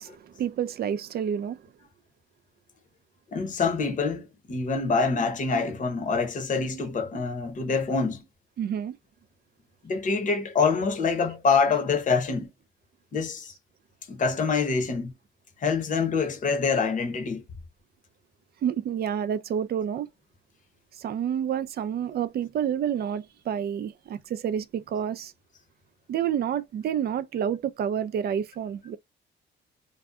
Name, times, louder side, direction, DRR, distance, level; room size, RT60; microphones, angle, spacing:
voice 1, 0.0-1.6 8.6-9.0 18.6-20.1 21.0-25.3 26.1-29.0, right 9 dB, 55° right, 0.4 m, -29 dB
voice 2, 3.3-8.2 9.8-12.5 13.1-13.5 14.1-15.1 15.6-17.4, left 4 dB, 40° left, 0.8 m, -25 dB
2.6 x 2.2 x 2.2 m
cardioid pair, 90°, 20 cm